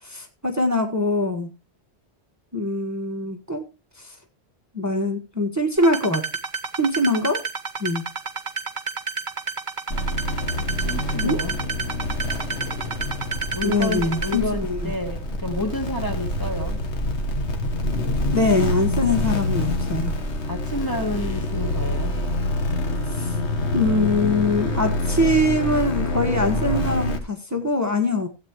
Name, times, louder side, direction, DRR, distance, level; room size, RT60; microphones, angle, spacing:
voice 1, 0.0-1.5 2.5-3.6 4.0-4.2 4.7-6.3 6.8-7.4 7.8-8.0 11.2-11.4 13.6-14.9 18.3-20.1 23.1-23.4 23.7-28.3, left 1 dB, 15° right, 1.5 m, -23 dB
sound 1, 5.8-14.4, right 5 dB, 50° right, 1.3 m, -30 dB
sound 2, 9.9-27.2, left 1 dB, 85° left, 1.6 m, -26 dB
voice 2, 10.8-11.6 13.5-16.8 20.5-22.1, left 1 dB, 20° left, 1.6 m, -29 dB
16.5 x 8.3 x 3.0 m
omnidirectional pair, 1.1 m